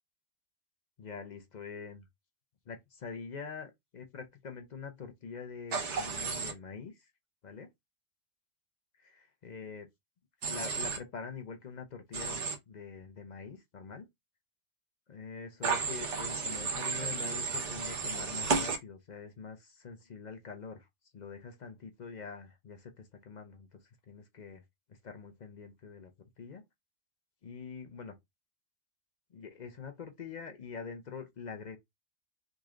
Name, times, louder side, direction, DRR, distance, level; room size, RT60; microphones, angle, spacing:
voice 1, 1.0-2.0 2.7-7.1 7.4-7.7 9.0-9.9 10.5-14.1 15.1-20.9 21.1-23.8 24.1-24.6 25.0-26.1 26.4-26.6 27.4-28.2 29.3-31.8, left 5 dB, 50° left, 0.5 m, -45 dB
Human voice / Train, 5.7-6.5 10.4-11.0 12.1-12.5 15.6-18.8, right 5 dB, 60° right, 1.3 m, -33 dB
3.7 x 3.1 x 2.4 m
omnidirectional pair, 1.4 m